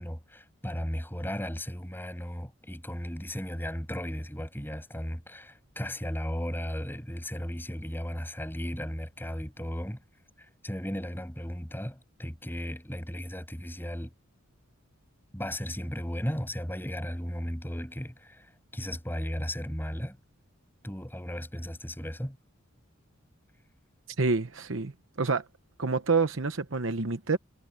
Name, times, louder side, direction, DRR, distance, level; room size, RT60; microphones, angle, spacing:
voice 1, 0.0-10.0 10.4-14.1 15.3-20.2 20.8-22.4, equal, 10° left, 7.3 m, -35 dB
voice 2, 24.2-24.9 25.2-25.4 25.8-27.4, right 4 dB, 65° right, 1.0 m, -27 dB
head